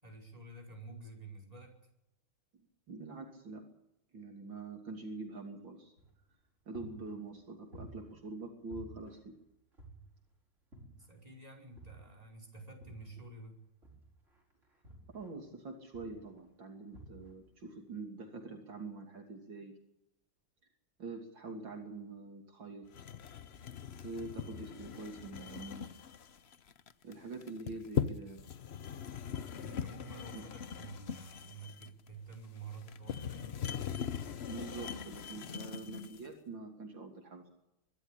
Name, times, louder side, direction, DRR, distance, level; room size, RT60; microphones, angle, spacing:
voice 1, 0.0-1.7 11.0-13.6 24.1-24.5 29.5-33.6, right 3 dB, 15° right, 0 dB, 5.1 m, -50 dB
voice 2, 2.9-3.6 4.1-5.9 6.7-9.3 15.1-19.7 21.0-23.1 24.0-25.9 27.0-28.4 30.3-30.4 34.5-37.5, right 3 dB, 65° right, 3 dB, 3.4 m, -45 dB
sound 1, 6.0-6.4 6.7-8.4 8.7-10.3 10.7-11.3 11.8-13.3 13.8-15.6 15.9-16.4 16.9-17.5, right 1 dB, 35° right, 5.6 m, -54 dB
sound 2, 22.9-36.3, left 8 dB, 60° left, 0.6 m, -40 dB
23.0 x 12.5 x 9.9 m, 0.87 s
omnidirectional pair, 2.2 m